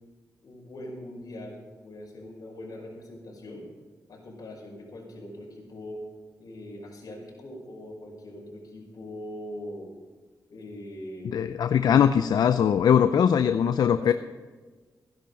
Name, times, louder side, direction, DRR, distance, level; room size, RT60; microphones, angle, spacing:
voice 1, 0.4-3.6 4.1-6.0 6.4-9.9 10.5-11.4 13.0-14.1, left 1 dB, 65° left, -1 dB, 5.3 m, -41 dB
voice 2, 11.2-14.1, left 8 dB, 80° left, 10 dB, 0.5 m, -21 dB
16.0 x 10.5 x 5.3 m, 1.3 s
cardioid pair, 95°, 7 cm